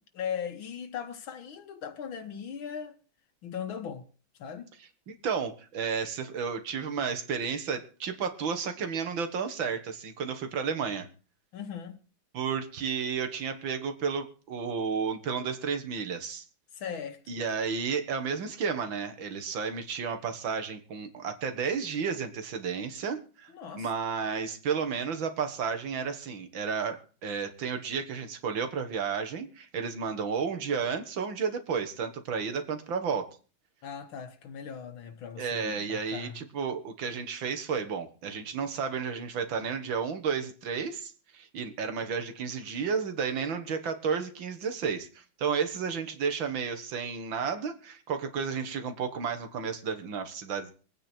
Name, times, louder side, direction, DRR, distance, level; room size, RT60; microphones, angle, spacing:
voice 1, 0.2-3.0 3.4-4.1 4.4-4.7 11.5-12.0 16.7-17.2 23.5-23.9 33.8-36.4, left 7 dB, 80° left, 1.9 m, -38 dB
voice 2, 5.1-11.1 12.3-16.4 17.3-23.5 23.7-33.4 35.4-50.7, right 6 dB, 70° right, 2.3 m, -32 dB
23.5 x 9.1 x 4.5 m
omnidirectional pair, 2.2 m